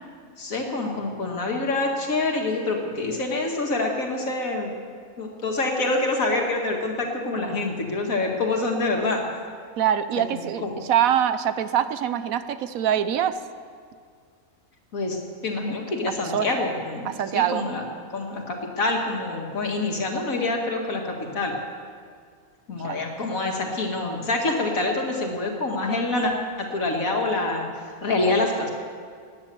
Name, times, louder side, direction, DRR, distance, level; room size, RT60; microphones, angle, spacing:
voice 1, 0.4-4.7 5.2-9.2 10.2-10.8 14.9-17.9 18.1-21.5 22.7-26.3 26.6-27.7 28.0-28.7, left 2 dB, 70° left, 1 dB, 2.4 m, -26 dB
voice 2, 9.8-13.4 16.2-16.6 17.0-17.6 22.8-23.0, right 9 dB, 75° right, 12 dB, 1.1 m, -24 dB
17.5 x 10.0 x 6.9 m, 2.1 s
omnidirectional pair, 1.5 m